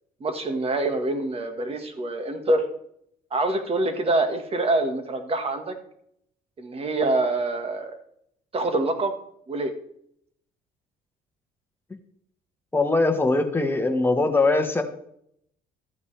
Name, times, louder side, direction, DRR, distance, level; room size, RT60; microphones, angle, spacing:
voice 1, 0.2-2.6 3.3-5.7 6.6-8.0 8.5-9.1 9.5-9.7, right 2 dB, 35° right, 6 dB, 1.6 m, -25 dB
voice 2, 12.7-14.8, left 3 dB, 10° left, 4 dB, 1.4 m, -21 dB
13.0 x 8.5 x 3.4 m, 0.71 s
cardioid pair, 110°, 17 cm